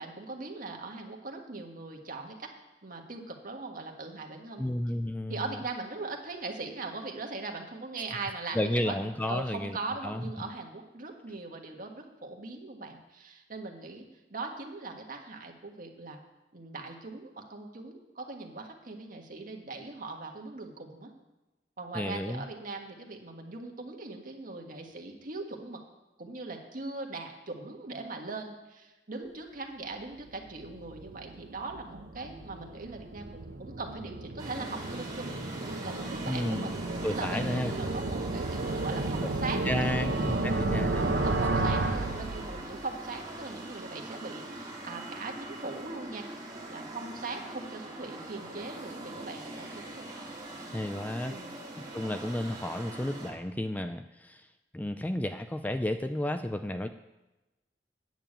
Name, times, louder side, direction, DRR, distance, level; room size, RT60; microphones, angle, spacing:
voice 1, 0.0-2.5 2.8-4.7 5.3-9.0 9.3-16.2 16.5-21.1 21.8-25.8 26.2-36.8 37.1-40.4 41.0-46.3 46.7-50.1 51.3-51.6, right 3 dB, 50° right, 3 dB, 1.6 m, -40 dB
voice 2, 4.6-5.5 8.5-9.8 10.0-10.5 21.9-22.4 36.2-36.7 37.0-37.7 39.6-41.3 41.5-41.6 50.7-51.4 51.8-54.5 54.7-56.9, left 1 dB, 10° left, 9 dB, 0.4 m, -32 dB
sound 1, 30.0-42.9, right 2 dB, 85° right, 0.8 m, -33 dB
sound 2, 34.4-53.3, right 2 dB, 20° right, 2.4 m, -42 dB
9.1 x 7.1 x 8.8 m, 1.1 s
head